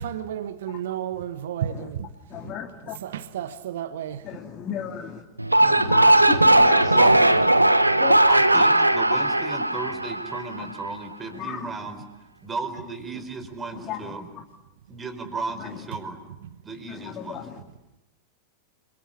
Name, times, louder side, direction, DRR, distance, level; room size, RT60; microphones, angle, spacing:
voice 1, 0.0-2.1 2.4-2.5 2.9-4.3 5.6-5.9, right 10 dB, 60° right, 1.2 m, -32 dB
voice 2, 2.3-2.9 4.2-5.2 5.6-7.0 8.0-8.2 8.6-8.7 11.3-11.6 13.9-14.0 17.0-17.4, left 9 dB, 35° left, 2.8 m, -34 dB
sound 1, 5.4-10.7, right 1 dB, 85° right, 1.3 m, -18 dB
voice 3, 8.2-12.0 12.4-14.3 14.9-16.2 16.6-17.5, right 3 dB, 15° right, 4.3 m, -34 dB
30.0 x 23.5 x 8.5 m
figure-of-eight pair, 90°, 0 cm